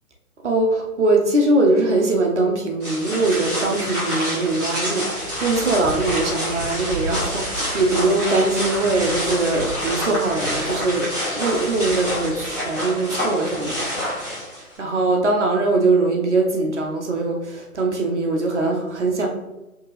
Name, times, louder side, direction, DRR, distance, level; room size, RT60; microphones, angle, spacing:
voice 1, 0.4-13.9 14.6-19.3, right 2 dB, 50° right, 1 dB, 0.9 m, -21 dB
sound 1, 2.8-14.8, equal, 10° right, 1.1 m, -27 dB
5.9 x 2.8 x 3.2 m, 1.0 s
figure-of-eight pair, 140°, 44 cm